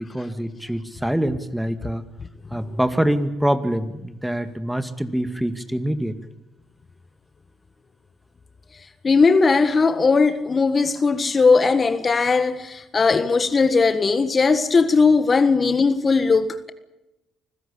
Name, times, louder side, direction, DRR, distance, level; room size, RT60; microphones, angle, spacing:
voice 1, 0.0-2.0 2.5-6.2, right 1 dB, 5° right, 2.2 m, -25 dB
voice 2, 9.0-16.7, left 4 dB, 35° left, 1.5 m, -18 dB
25.5 x 16.0 x 8.6 m
supercardioid pair, 60°, 0 cm